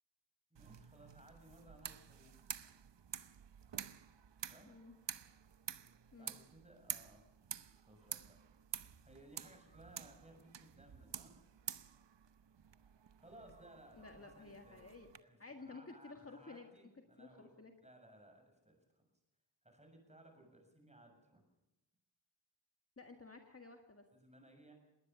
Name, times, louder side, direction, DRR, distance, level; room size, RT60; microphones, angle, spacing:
voice 1, 0.5-2.3 4.4-4.8 6.2-7.2 7.8-8.4 8.9-11.4 13.2-14.9 15.2-17.5 17.8-19.1 19.6-21.5 24.1-24.7, right 1 dB, 15° right, 4 dB, 7.0 m, -61 dB
sound 1, 0.6-15.2, right 8 dB, 70° right, 0.9 m, -50 dB
voice 2, 14.0-15.1 15.4-16.7 17.2-17.7 23.0-24.0, left 3 dB, 30° left, 4 dB, 1.8 m, -53 dB
21.0 x 19.0 x 7.0 m, 0.97 s
wide cardioid pair, 90°, 44 cm